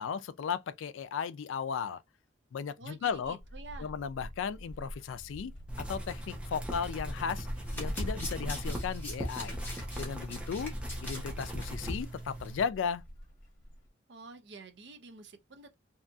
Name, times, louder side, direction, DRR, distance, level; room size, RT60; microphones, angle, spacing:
voice 1, 0.0-2.0 2.5-3.4 3.8-7.5 7.7-9.6 9.9-10.7 11.0-13.0, left 6 dB, 80° left, 0.3 m, -35 dB
voice 2, 2.8-3.9 14.1-15.7, right 3 dB, 60° right, 0.5 m, -49 dB
sound 1, 3.1-13.9, equal, 40° left, 0.9 m, -48 dB
sound 2, 5.7-12.7, equal, 5° right, 0.5 m, -38 dB
Domestic sounds home sounds, 7.5-11.7 12.0-12.2 12.4-12.5, left 2 dB, 10° left, 1.0 m, -44 dB
2.7 x 2.6 x 2.3 m
head